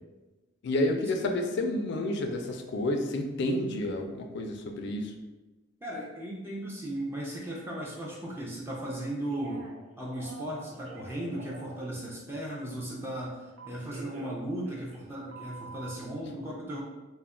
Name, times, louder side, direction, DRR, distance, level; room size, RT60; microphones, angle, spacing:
voice 1, 0.6-5.1, left 1 dB, 60° left, 4 dB, 0.3 m, -30 dB
voice 2, 5.8-9.7 10.0-16.8, right 1 dB, 10° right, -4 dB, 0.4 m, -36 dB
Telephone, 9.3-9.8 10.1-11.9 13.6-15.1 15.3-16.0, right 4 dB, 85° right, 0.5 m, -46 dB
2.2 x 2.1 x 3.5 m, 1.1 s
head